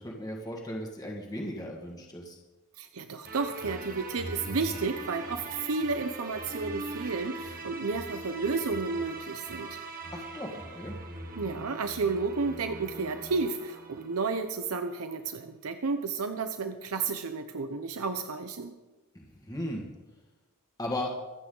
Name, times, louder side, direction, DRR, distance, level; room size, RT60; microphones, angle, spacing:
voice 1, 0.0-2.4 10.1-11.0 19.1-19.9 20.8-21.1, left 1 dB, 15° left, 0 dB, 1.7 m, -36 dB
voice 2, 2.8-9.8 11.4-18.7, right 4 dB, 85° right, 8 dB, 0.8 m, -32 dB
sound 1, 3.2-14.6, right 2 dB, 40° right, 1.6 m, -41 dB
24.5 x 8.5 x 3.9 m, 1.1 s
head